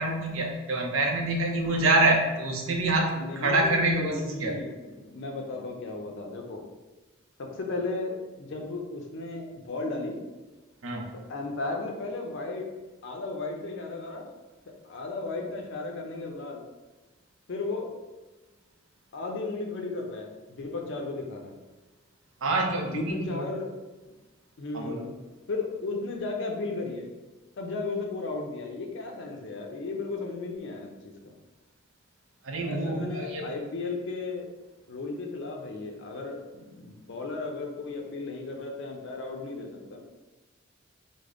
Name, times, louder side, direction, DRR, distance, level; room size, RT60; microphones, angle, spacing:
voice 1, 0.0-4.6 10.8-11.1 22.4-23.5 24.7-25.0 32.4-33.5, right 2 dB, 80° right, 1 dB, 0.6 m, -26 dB
voice 2, 3.2-6.6 7.4-10.2 11.3-12.7 13.0-14.3 14.7-16.6 17.5-17.9 19.1-21.6 22.8-23.7 24.6-25.0 25.5-27.1 27.6-31.3 32.6-34.5 34.9-40.0, left 3 dB, 65° left, 2 dB, 0.5 m, -35 dB
3.4 x 2.1 x 3.6 m, 1.2 s
head